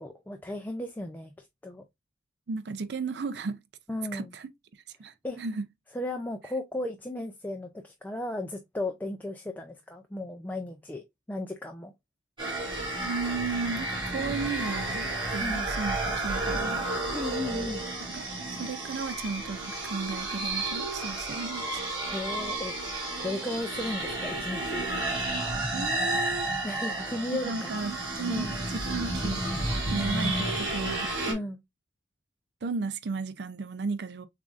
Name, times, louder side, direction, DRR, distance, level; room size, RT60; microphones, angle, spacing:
voice 1, 0.0-1.8 3.9-4.3 5.2-5.4 5.9-11.9 15.4-15.7 17.1-17.8 22.1-22.8 23.2-24.9 26.6-27.7 28.3-28.6 31.3-31.6, left 1 dB, 10° left, 0.4 m, -35 dB
voice 2, 2.5-3.6 4.1-4.5 5.0-5.6 13.0-16.9 18.1-21.8 25.7-26.5 27.3-29.5 29.9-31.1 32.6-34.3, right 4 dB, 60° right, 0.4 m, -34 dB
sound 1, 12.4-31.3, right 2 dB, 25° right, 2.9 m, -31 dB
6.9 x 2.5 x 2.5 m
head